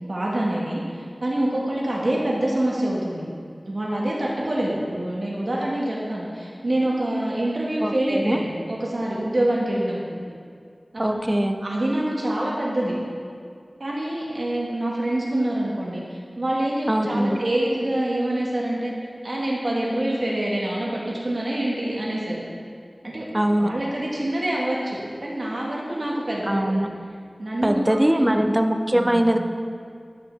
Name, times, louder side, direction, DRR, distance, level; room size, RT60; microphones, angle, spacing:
voice 1, 0.1-0.8 1.2-3.2 3.6-10.2 10.9-12.9 13.8-18.9 19.2-22.4 23.0-23.3 23.6-26.8 27.4-28.4 28.9-29.3, right 1 dB, 70° right, -5 dB, 1.8 m, -26 dB
voice 2, 7.8-8.4 11.0-11.6 16.9-17.4 23.3-23.7 26.5-26.9 27.6-29.4, right 1 dB, 20° right, 5 dB, 0.6 m, -21 dB
13.5 x 5.8 x 3.5 m, 2.2 s
wide cardioid pair, 45°, 0 cm